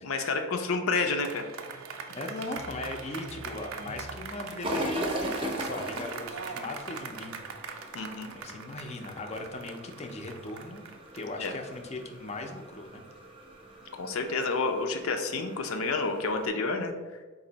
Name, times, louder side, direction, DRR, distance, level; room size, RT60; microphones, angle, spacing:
voice 1, 0.0-1.4 7.9-8.3 11.4-11.5 13.9-16.9, left 3 dB, 80° left, 5 dB, 0.5 m, -29 dB
sound 1, 1.1-12.5, right 5 dB, 75° right, 0.4 m, -41 dB
voice 2, 2.1-7.4 7.7-8.0 8.3-10.8 11.1-13.0, left 2 dB, 30° left, 4 dB, 0.4 m, -39 dB
sound 2, 4.6-16.5, equal, 25° right, 0.5 m, -39 dB
4.2 x 2.6 x 3.9 m, 1.3 s
head